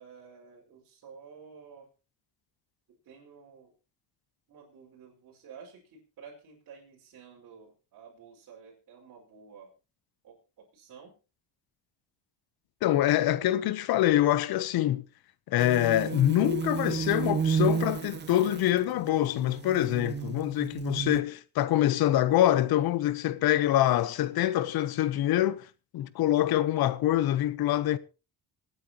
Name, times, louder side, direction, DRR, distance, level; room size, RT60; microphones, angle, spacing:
voice 1, 0.0-1.9 2.9-3.7 4.5-9.7 10.2-11.1 20.2-20.6, right 6 dB, 55° right, 5.1 m, -52 dB
voice 2, 12.8-15.0 15.5-25.7 25.9-28.0, left 13 dB, 65° left, 1.0 m, -25 dB
sound 1, 15.6-21.2, right 6 dB, 25° right, 0.8 m, -32 dB
25.5 x 9.2 x 3.0 m
cardioid pair, 130°, 40 cm